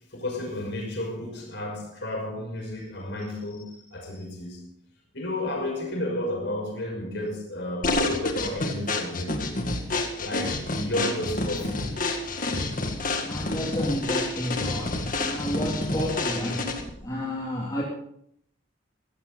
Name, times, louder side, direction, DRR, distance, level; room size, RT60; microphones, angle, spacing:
voice 1, 0.1-4.6 5.1-9.5 10.2-11.9, left 1 dB, 65° left, 6.0 m, -32 dB
sound 1, 7.8-17.0, left 2 dB, 45° left, 1.9 m, -29 dB
voice 2, 13.3-14.9 15.2-16.6 17.0-17.8, left 1 dB, 20° left, 3.2 m, -31 dB
16.5 x 15.5 x 4.1 m
head